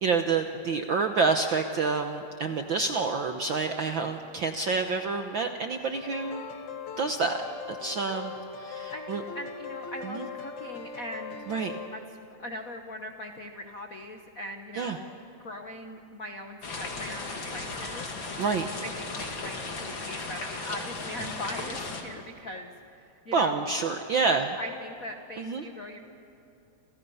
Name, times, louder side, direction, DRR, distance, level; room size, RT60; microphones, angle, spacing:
voice 1, 0.0-6.4 7.0-7.4 7.7-8.3 8.6-9.2 10.1-10.2 11.5-11.8 14.7-15.0 18.4-18.8 23.3-24.5 25.4-25.6, right 4 dB, 65° right, 5 dB, 1.2 m, -28 dB
sound 1, 5.9-11.9, left 5 dB, 75° left, 3.3 m, -40 dB
voice 2, 8.9-11.4 11.9-15.1 15.4-18.1 18.8-23.7 24.2-26.0, left 1 dB, 60° left, 4 dB, 0.9 m, -40 dB
sound 2, 16.6-22.0, left 3 dB, 40° left, 2.9 m, -36 dB
30.0 x 28.5 x 5.6 m, 2.8 s
omnidirectional pair, 3.4 m